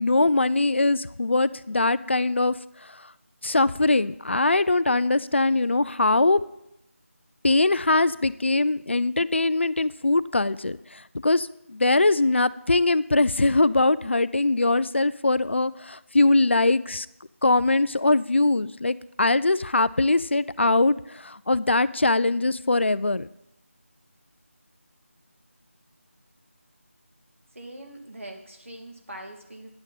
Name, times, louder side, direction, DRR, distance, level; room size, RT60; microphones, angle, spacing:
voice 1, 0.0-2.5 3.4-6.4 7.4-10.8 11.2-17.1 17.4-23.3, left 2 dB, 55° left, 16 dB, 0.4 m, -22 dB
voice 2, 27.5-29.7, right 1 dB, 65° right, 2 dB, 2.4 m, -42 dB
10.5 x 8.8 x 5.6 m, 0.83 s
figure-of-eight pair, 165°, 8 cm